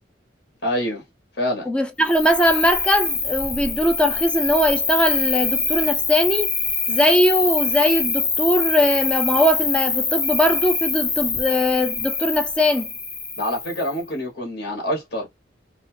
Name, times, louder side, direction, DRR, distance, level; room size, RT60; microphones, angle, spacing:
voice 1, 0.6-1.0 1.4-1.7 13.4-15.3, left 1 dB, 70° left, 1.1 m, -26 dB
voice 2, 1.7-6.5 6.9-12.9, equal, 5° left, 0.4 m, -20 dB
Cricket, 2.0-14.0, left 4 dB, 30° left, 0.9 m, -24 dB
2.7 x 2.4 x 3.1 m
head